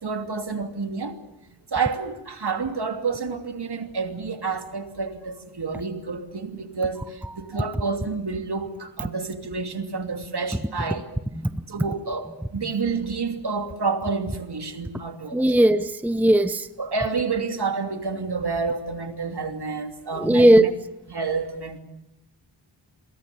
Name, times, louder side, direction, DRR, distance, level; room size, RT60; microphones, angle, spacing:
voice 1, 0.0-1.2 1.7-11.1 11.7-15.5 16.8-20.7 21.1-21.8, right 4 dB, 60° right, 3.0 m, -29 dB
voice 2, 15.3-16.7 20.2-20.7, right 1 dB, 5° right, 0.8 m, -17 dB
29.5 x 22.5 x 7.1 m
wide cardioid pair, 85°, 44 cm